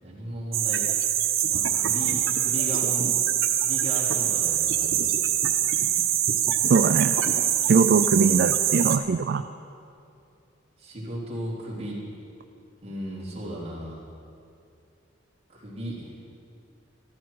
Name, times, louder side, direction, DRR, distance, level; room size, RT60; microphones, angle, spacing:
voice 1, 0.0-0.9 1.5-3.1 3.5-5.1 10.8-12.0 12.8-14.1 15.5-16.1, right 1 dB, 30° right, -7 dB, 3.6 m, -36 dB
sound 1, 0.5-9.0, right 10 dB, 90° right, 0.8 m, -24 dB
voice 2, 6.7-7.2 7.6-9.4, right 5 dB, 50° right, 9 dB, 0.3 m, -21 dB
14.0 x 13.0 x 4.7 m, 2.5 s
head